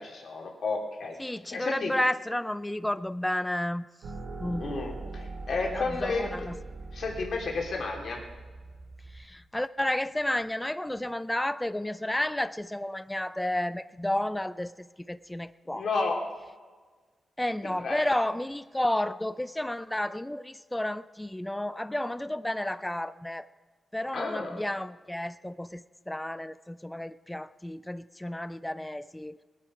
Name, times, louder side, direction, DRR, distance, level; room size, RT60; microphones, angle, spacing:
voice 1, 0.0-1.9 4.4-6.5 6.9-8.2 15.7-16.3 17.6-18.1 24.1-24.6, left 3 dB, 65° left, 0 dB, 2.8 m, -32 dB
voice 2, 1.2-3.8 4.4-5.0 5.7-6.6 9.1-15.9 17.4-23.4 23.9-29.4, left 1 dB, 10° left, 14 dB, 0.4 m, -31 dB
sound 1, 4.0-9.2, right 3 dB, 80° right, 2.5 m, -41 dB
20.5 x 10.0 x 4.9 m, 1.4 s
cardioid pair, 90°, 0 cm